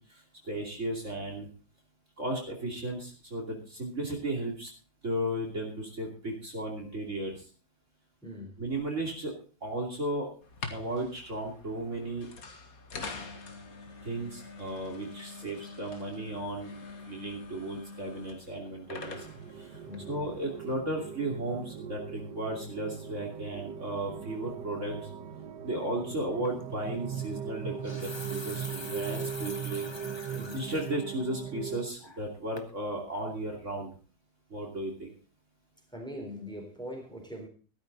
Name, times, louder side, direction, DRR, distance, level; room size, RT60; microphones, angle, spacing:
voice 1, 0.0-1.5 2.2-4.7 5.0-7.5 8.6-9.3 9.6-10.3 10.7-12.3 14.0-16.7 17.1-19.3 19.5-19.8 20.1-25.1 25.6-29.9 30.5-33.9 34.5-35.1, right 1 dB, 45° right, 3.1 m, -35 dB
voice 2, 8.2-8.6 15.4-15.7 19.9-20.1 30.3-30.6 35.9-37.5, equal, ahead, 3.8 m, -42 dB
sound 1, 10.4-20.7, left 4 dB, 55° left, 2.1 m, -45 dB
sound 2, 18.9-31.9, right 8 dB, 85° right, 1.7 m, -39 dB
sound 3, 26.4-26.6 27.6-30.9 31.4-31.5 32.0-32.3 32.6-32.7, left 2 dB, 20° left, 1.1 m, -44 dB
14.5 x 13.0 x 4.0 m
omnidirectional pair, 1.8 m